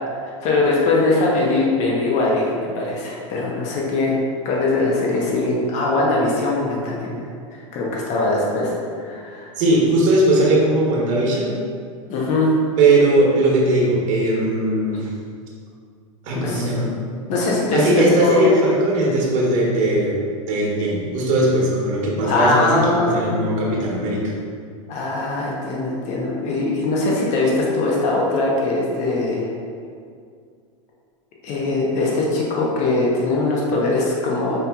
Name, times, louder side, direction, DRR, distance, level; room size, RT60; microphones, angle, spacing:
voice 1, 0.2-9.5 12.1-12.5 16.3-16.7 17.3-18.6 22.2-23.5 24.9-29.5 31.4-34.6, left 2 dB, 45° left, -3 dB, 0.8 m, -21 dB
voice 2, 9.6-11.5 12.8-15.1 16.2-16.9 17.7-20.2 20.5-24.2, right 1 dB, 50° right, -4 dB, 1.1 m, -19 dB
5.1 x 2.9 x 2.3 m, 2.2 s
hypercardioid pair, 100°, 17 cm